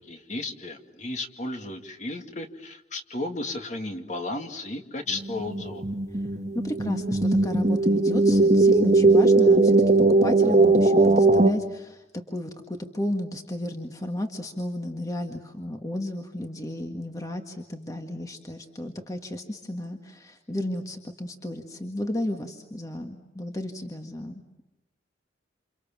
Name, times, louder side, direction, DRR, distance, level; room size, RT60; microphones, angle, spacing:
voice 1, 0.1-5.8, left 2 dB, 40° left, 5 dB, 2.2 m, -34 dB
sound 1, 5.1-11.5, right 2 dB, 40° right, 1.4 m, -19 dB
voice 2, 6.6-9.8 10.1-24.6, left 1 dB, 20° left, 4 dB, 1.7 m, -33 dB
29.0 x 27.5 x 7.4 m, 0.96 s
head